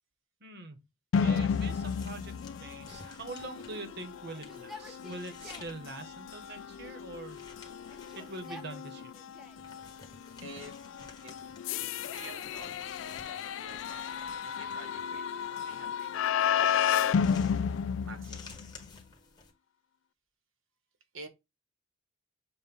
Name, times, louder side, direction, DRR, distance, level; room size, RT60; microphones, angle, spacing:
voice 1, 0.4-0.8 1.2-2.3 2.6-7.4 8.1-9.1, right 2 dB, 55° right, 1.2 m, -44 dB
sound 1, 1.1-18.8, left 7 dB, 65° left, 0.3 m, -33 dB
sound 2, 1.5-19.5, left 3 dB, 20° left, 1.4 m, -54 dB
Yell, 3.4-5.8 6.7-7.4 7.8-9.7 10.4-11.1 11.8-13.6 15.0-15.8 16.6-18.4, left 1 dB, ahead, 0.8 m, -54 dB
voice 2, 10.4-10.8 11.2-11.5 12.0-12.7 13.1-14.0 14.3-16.3 18.0-18.6 21.1-21.3, right 2 dB, 75° right, 1.4 m, -49 dB
7.2 x 2.5 x 5.3 m
head